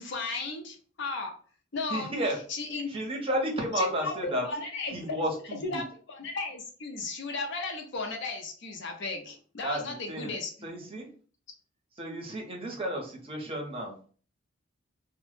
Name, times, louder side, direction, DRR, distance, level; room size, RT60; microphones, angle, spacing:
voice 1, 0.0-1.3 1.7-2.1 2.5-3.0 3.7-4.1 4.4-5.0 5.6-10.7, left 3 dB, 65° left, 3 dB, 0.6 m, -35 dB
voice 2, 1.9-2.4 2.9-4.4 4.9-5.8 9.6-10.3 10.6-11.1 12.0-13.9, equal, 30° right, 1 dB, 0.6 m, -32 dB
2.0 x 2.0 x 3.1 m, 0.41 s
head